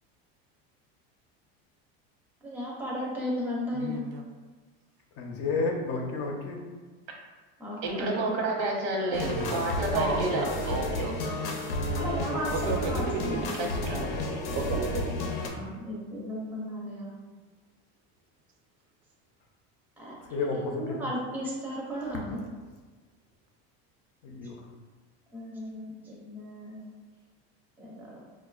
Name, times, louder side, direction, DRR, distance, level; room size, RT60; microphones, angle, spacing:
voice 1, 2.4-4.0 7.6-8.2 12.0-13.5 15.5-17.2 20.0-20.1 20.5-22.5 25.3-26.8 27.8-28.2, equal, 5° right, -5 dB, 0.5 m, -35 dB
voice 2, 3.7-4.2 9.9-11.9 12.5-13.7 14.5-15.1, right 5 dB, 55° right, 3 dB, 0.5 m, -34 dB
voice 3, 5.2-6.6 9.2-9.7 20.3-21.0 24.2-24.5, left 3 dB, 50° left, 1 dB, 0.6 m, -31 dB
voice 4, 7.8-11.1 13.6-14.1, right 2 dB, 85° right, -1 dB, 1.0 m, -30 dB
sound 1, 9.1-15.5, left 2 dB, 90° left, 0.6 m, -31 dB
4.5 x 2.3 x 2.3 m, 1.3 s
cardioid pair, 160°, 31 cm